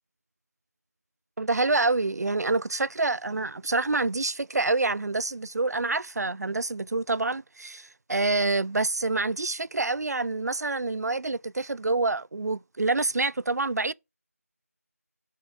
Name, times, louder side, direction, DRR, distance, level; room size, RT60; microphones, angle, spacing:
voice 1, 1.4-13.9, right 3 dB, 85° right, 0.4 m, -27 dB
8.5 x 5.6 x 3.6 m
figure-of-eight pair, 175°, 9 cm